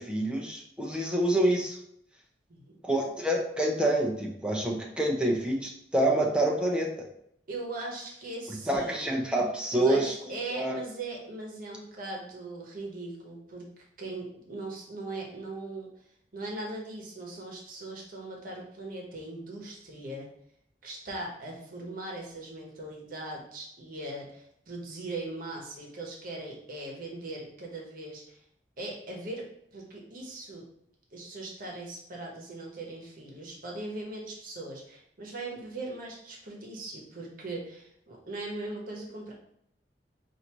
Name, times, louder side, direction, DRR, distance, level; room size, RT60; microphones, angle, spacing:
voice 1, 0.0-1.8 2.8-6.9 8.7-10.1 10.5-10.8, right 1 dB, 5° right, -1 dB, 0.7 m, -27 dB
voice 2, 7.5-9.1 9.7-13.7 14.0-15.9 16.3-20.3 20.8-28.4 28.8-29.5 29.7-30.6 31.1-39.3, right 2 dB, 50° right, -1 dB, 1.0 m, -39 dB
4.8 x 2.6 x 3.0 m, 0.72 s
head